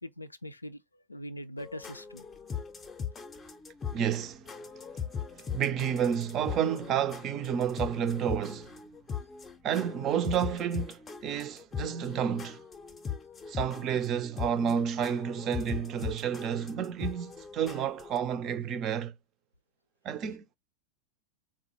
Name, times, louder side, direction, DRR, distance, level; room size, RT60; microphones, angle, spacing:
voice 1, 0.0-2.3, left 1 dB, 85° left, 0.3 m, -42 dB
sound 1, 1.6-18.2, left 7 dB, 20° left, 0.5 m, -40 dB
voice 2, 3.9-4.6 5.3-8.7 9.6-12.6 13.5-19.1 20.0-20.5, right 8 dB, 35° right, 0.4 m, -30 dB
3.6 x 2.1 x 3.0 m
figure-of-eight pair, 90°, 0 cm